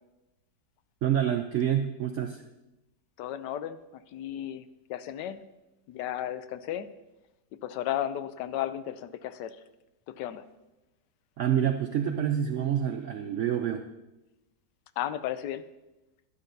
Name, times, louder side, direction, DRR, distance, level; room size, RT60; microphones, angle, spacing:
voice 1, 1.0-2.4 11.4-13.9, right 9 dB, 80° right, 6 dB, 0.6 m, -27 dB
voice 2, 3.2-3.8 4.1-4.6 4.9-5.4 5.9-6.9 7.6-9.6 10.2-10.4 15.0-15.6, left 11 dB, 90° left, 12 dB, 1.2 m, -34 dB
12.0 x 11.0 x 2.6 m, 1.0 s
omnidirectional pair, 1.8 m